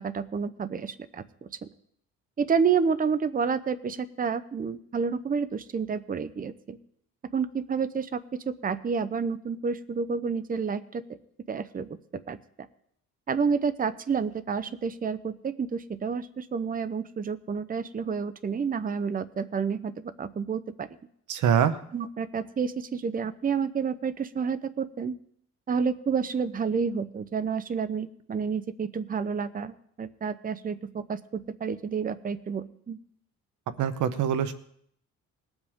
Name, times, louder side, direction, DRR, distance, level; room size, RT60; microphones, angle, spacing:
voice 1, 0.0-1.5 2.4-6.8 7.3-11.0 11.5-12.0 12.3-12.4 13.3-20.9 21.9-25.1 25.7-33.0, right 6 dB, 30° right, 12 dB, 0.7 m, -29 dB
voice 2, 21.3-21.8 33.8-34.5, right 8 dB, 80° right, 12 dB, 1.1 m, -24 dB
20.5 x 8.0 x 3.6 m, 0.68 s
cardioid pair, 90°, 30 cm